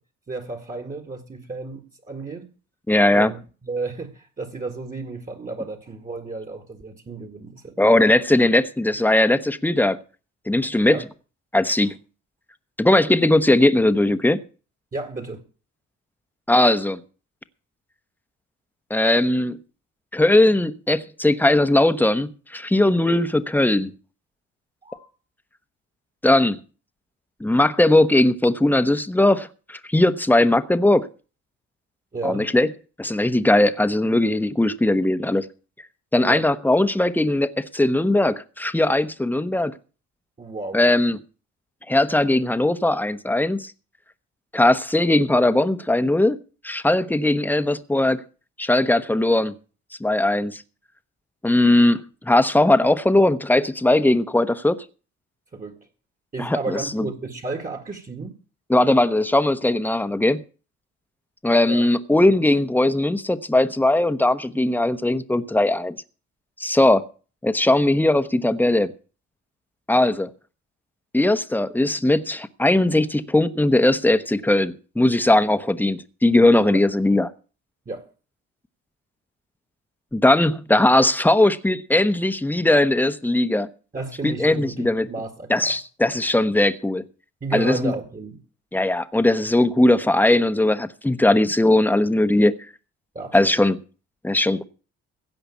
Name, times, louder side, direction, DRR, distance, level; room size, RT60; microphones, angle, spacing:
voice 1, 0.3-2.5 3.1-7.9 10.8-11.1 14.9-15.4 24.8-25.1 32.1-32.5 36.2-36.5 40.4-40.8 55.5-55.8 56.3-58.4 61.7-61.9 76.7-76.8 77.9-78.1 83.9-85.8 87.4-88.4 91.2-91.4 93.1-93.5, right 3 dB, 25° right, 2.0 m, -33 dB
voice 2, 2.9-3.3 7.8-10.0 10.5-11.0 11.5-11.9 12.8-14.4 16.5-17.0 18.9-19.6 20.1-23.9 26.2-26.6 27.4-31.1 32.2-32.7 33.0-35.5 36.1-39.7 40.7-41.2 41.9-43.7 44.5-46.4 46.6-48.2 48.6-49.5 50.0-50.6 51.4-54.8 56.4-57.1 58.7-60.4 61.4-65.9 66.6-67.0 67.4-68.9 69.9-70.3 71.1-77.3 80.1-83.7 84.2-85.1 85.5-87.0 87.5-87.9 88.7-92.5 93.3-93.8 94.2-94.6, left 1 dB, 5° left, 1.0 m, -19 dB
16.5 x 5.8 x 8.4 m
cardioid pair, 90°, 30 cm